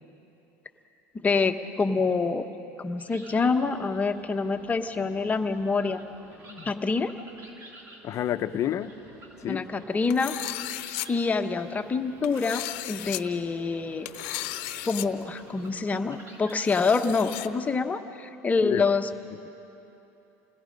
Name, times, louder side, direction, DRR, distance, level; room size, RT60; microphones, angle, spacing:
voice 1, 1.2-2.5 2.8-6.0 6.6-7.1 9.4-10.3 11.1-14.1 14.9-19.1, left 4 dB, 20° left, 7 dB, 1.1 m, -26 dB
sound 1, 3.0-17.6, right 1 dB, 40° right, 4.0 m, -50 dB
voice 2, 8.0-9.0 9.4-9.7 18.6-18.8, left 11 dB, 45° left, 10 dB, 0.8 m, -29 dB
sound 2, 10.1-11.1 12.2-13.2 14.1-15.1 15.4-15.5 16.5-17.5, left 17 dB, 75° left, 0.9 m, -35 dB
29.5 x 20.5 x 5.3 m, 2.9 s
supercardioid pair, 115°, 7 cm